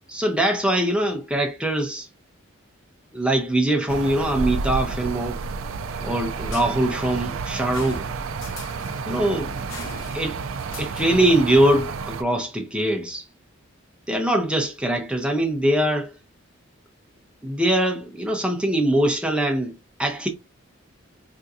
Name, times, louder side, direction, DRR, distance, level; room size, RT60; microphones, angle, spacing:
voice 1, 0.1-2.1 3.1-5.4 6.0-8.1 9.1-9.5 10.1-10.4 10.8-13.2 14.1-16.1 17.4-20.3, right 1 dB, 5° right, 0.6 m, -22 dB
sound 1, 3.9-12.2, right 4 dB, 75° right, 0.4 m, -30 dB
sound 2, 6.5-11.5, left 2 dB, 65° left, 1.0 m, -42 dB
3.6 x 2.6 x 2.5 m
head